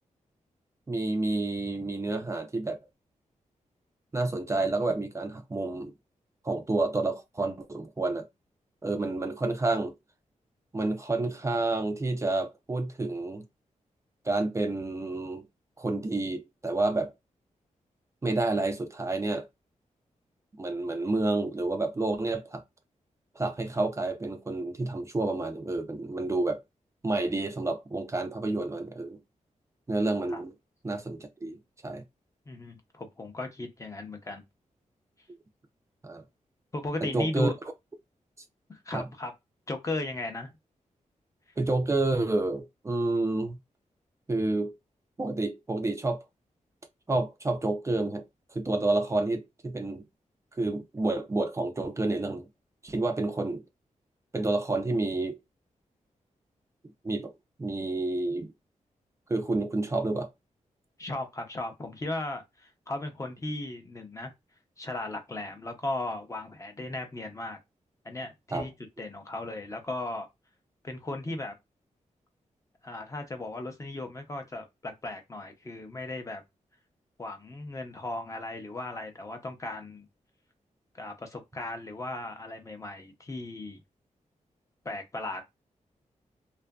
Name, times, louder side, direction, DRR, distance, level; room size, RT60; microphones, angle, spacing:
voice 1, 0.9-2.8 4.1-5.9 6.4-8.3 8.8-10.0 10.7-13.4 14.3-15.5 15.8-17.1 18.2-19.5 20.6-22.6 23.4-26.6 27.0-29.2 29.9-30.5 30.8-32.0 36.0-36.2 37.1-37.5 38.9-39.1 41.6-43.6 44.3-44.7 45.2-46.2 47.1-48.2 48.5-50.0 50.6-52.5 52.8-53.6 54.3-55.4 57.0-57.3 57.6-58.5 59.3-60.3 68.5-68.7, right 2 dB, 20° right, 0.4 m, -29 dB
voice 2, 32.5-34.4 36.7-37.5 38.7-39.3 39.7-40.5 61.0-64.3 64.8-67.6 68.0-68.7 69.0-70.3 70.8-71.6 72.8-76.4 77.2-80.1 80.9-83.8 84.8-85.5, left 2 dB, 25° left, 0.6 m, -36 dB
2.6 x 2.4 x 2.2 m
wide cardioid pair, 130°, 13 cm